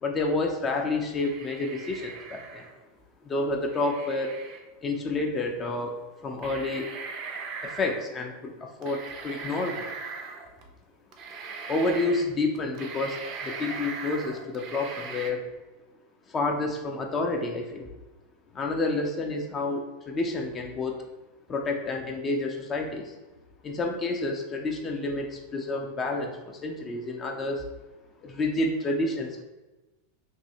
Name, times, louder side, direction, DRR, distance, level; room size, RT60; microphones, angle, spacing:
voice 1, 0.0-2.6 3.2-4.4 4.8-5.9 6.2-6.9 7.6-9.9 11.7-15.4 16.3-17.9 18.5-21.0 21.5-23.1 23.6-27.6 28.2-29.4, left 2 dB, 25° left, 2 dB, 0.4 m, -29 dB
sound 1, 1.1-2.8 3.7-4.6 5.8-5.9 6.4-8.1 8.8-10.6 11.1-12.3 12.6-15.3, right 5 dB, 40° right, 0.4 m, -39 dB
3.0 x 2.6 x 2.7 m, 1.1 s
figure-of-eight pair, 85°, 0 cm